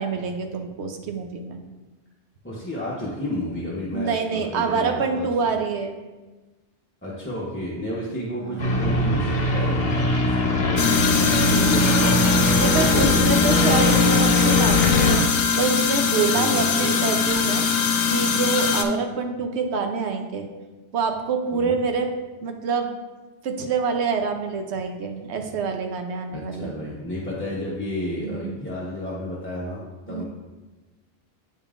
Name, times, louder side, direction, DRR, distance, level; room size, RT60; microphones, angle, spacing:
voice 1, 0.0-1.6 3.9-6.0 8.4-8.8 12.6-15.3 15.6-17.6 18.1-20.5 20.9-22.1 22.4-22.9 23.4-26.7 28.2-28.6 30.1-30.2, right 5 dB, 75° right, 5 dB, 1.0 m, -26 dB
voice 2, 2.4-5.5 7.0-13.3 13.6-13.9 16.3-17.5 21.5-21.8 26.3-30.2, left 1 dB, 10° left, -7 dB, 0.7 m, -32 dB
sound 1, 8.6-15.2, left 2 dB, 45° left, 0.9 m, -20 dB
sound 2, 10.8-18.8, left 6 dB, 85° left, 0.9 m, -22 dB
8.5 x 5.3 x 2.4 m, 1.2 s
omnidirectional pair, 1.1 m